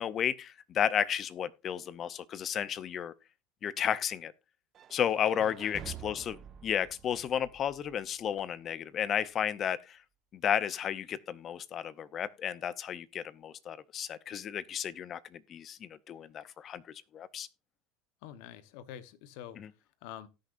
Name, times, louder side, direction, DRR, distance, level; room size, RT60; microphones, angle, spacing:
voice 1, 0.0-3.1 3.6-4.3 4.9-10.0 10.3-16.8 17.1-17.5 19.6-19.7, left 9 dB, 40° left, 0.6 m, -33 dB
sound 1, 4.7-8.7, right 9 dB, 35° right, 1.1 m, -49 dB
voice 2, 5.4-5.8 18.2-19.6 20.0-20.3, left 10 dB, 70° left, 1.0 m, -46 dB
18.0 x 6.6 x 2.5 m
supercardioid pair, 105°, 0 cm